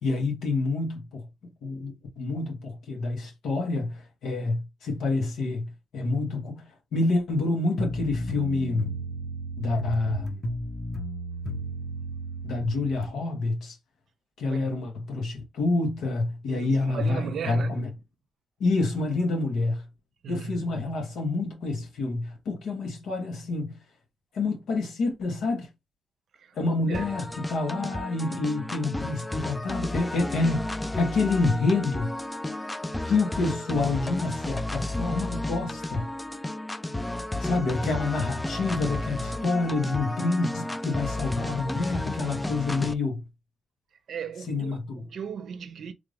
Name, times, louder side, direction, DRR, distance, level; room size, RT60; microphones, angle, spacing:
voice 1, 0.0-1.3 1.6-8.9 9.6-10.4 12.4-13.8 14.4-17.9 18.6-19.9 20.3-23.8 24.3-25.7 26.5-32.1 33.0-36.1 37.4-43.2 44.5-45.1, left 3 dB, 85° left, 1.3 m, -28 dB
sound 1, 7.8-13.1, right 1 dB, 40° left, 0.9 m, -34 dB
voice 2, 14.4-14.8 16.5-17.9 20.2-20.9 26.4-27.1 37.5-37.9 44.1-45.9, right 7 dB, 70° right, 0.6 m, -37 dB
sound 2, 26.9-42.9, left 1 dB, 15° left, 0.4 m, -32 dB
3.5 x 2.5 x 3.3 m
cardioid pair, 75°, 0 cm